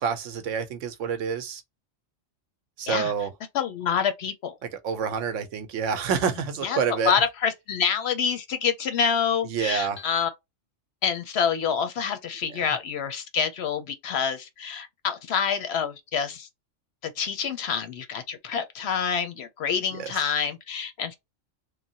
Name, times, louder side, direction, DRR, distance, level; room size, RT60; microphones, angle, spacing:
voice 1, 0.0-1.6 2.8-3.3 4.8-7.1 9.5-10.0 12.5-12.6 19.9-20.3, right 6 dB, 75° right, 1.0 m, -28 dB
voice 2, 3.5-4.5 6.6-10.3 11.0-16.5 17.0-21.1, left 7 dB, 65° left, 0.7 m, -27 dB
3.2 x 2.0 x 2.7 m
omnidirectional pair, 1.3 m